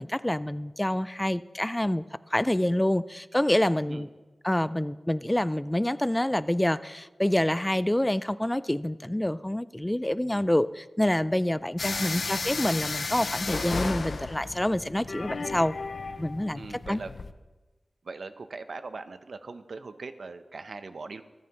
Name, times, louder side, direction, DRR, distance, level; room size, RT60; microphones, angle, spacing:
voice 1, 0.0-2.0 2.3-4.1 4.4-15.7 16.2-16.6 16.9-17.0, left 1 dB, 15° left, 16 dB, 0.3 m, -27 dB
sound 1, 11.8-17.3, left 4 dB, 70° left, 0.6 m, -34 dB
voice 2, 11.9-12.6 16.5-17.1 18.0-21.2, right 4 dB, 80° right, 10 dB, 0.7 m, -41 dB
26.5 x 9.5 x 3.0 m, 1.2 s
wide cardioid pair, 75°, 0 cm